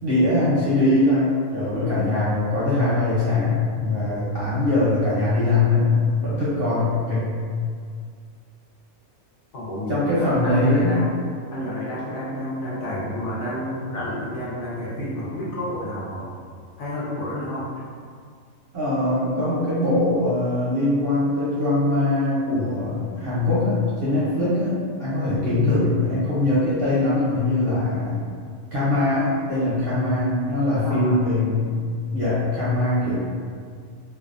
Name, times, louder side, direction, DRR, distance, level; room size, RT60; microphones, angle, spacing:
voice 1, 0.0-7.3 9.9-11.0 18.7-28.2 28.7-31.8 32.1-33.1, left 2 dB, 60° right, -10 dB, 0.6 m, -22 dB
voice 2, 9.5-11.2 11.5-16.3 16.8-17.7 30.8-31.2, left 1 dB, 65° left, -7 dB, 0.9 m, -30 dB
2.5 x 2.1 x 2.4 m, 2.1 s
omnidirectional pair, 1.4 m